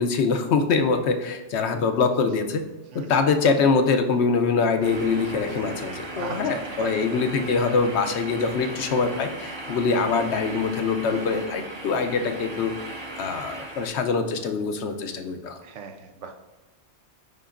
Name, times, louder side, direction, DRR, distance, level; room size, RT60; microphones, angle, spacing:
voice 1, 0.0-2.6 2.9-12.7 13.2-15.6, left 4 dB, 75° left, 7 dB, 0.9 m, -24 dB
sound 1, 4.8-13.9, right 2 dB, 30° right, 0.7 m, -37 dB
voice 2, 6.0-6.9 9.9-10.0 15.6-16.3, right 6 dB, 85° right, 6 dB, 1.0 m, -39 dB
10.5 x 3.8 x 2.5 m, 1.1 s
omnidirectional pair, 1.2 m